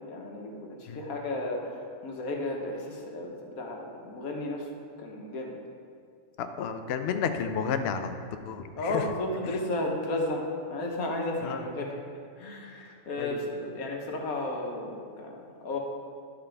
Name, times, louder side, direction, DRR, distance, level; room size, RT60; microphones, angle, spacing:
voice 1, 0.0-4.7 5.0-5.6 8.8-11.9 12.4-15.8, left 2 dB, 85° left, 1 dB, 1.5 m, -33 dB
voice 2, 6.4-8.1 8.5-9.1 9.4-9.6 11.4-11.7 13.2-13.4, left 6 dB, 65° left, 7 dB, 0.6 m, -32 dB
11.0 x 5.9 x 3.4 m, 2.3 s
omnidirectional pair, 1.5 m